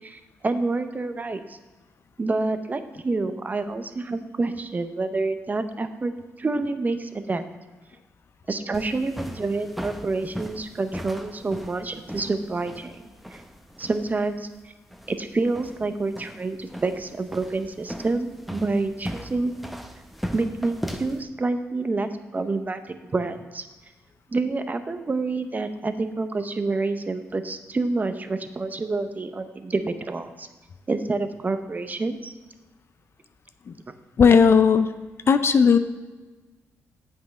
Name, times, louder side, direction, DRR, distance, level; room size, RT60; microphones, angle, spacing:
voice 1, 0.0-1.6 2.2-6.1 6.4-7.4 8.5-13.0 13.3-13.4 13.8-14.5 15.1-19.5 20.3-23.6 24.3-30.5 30.9-32.3, right 3 dB, 30° right, 9 dB, 0.7 m, -28 dB
sound 1, 8.7-21.2, equal, ahead, 0.7 m, -38 dB
voice 2, 34.2-34.9 35.3-35.8, left 6 dB, 50° left, 10 dB, 0.5 m, -16 dB
8.1 x 5.6 x 5.2 m, 1.2 s
supercardioid pair, 65°, 5 cm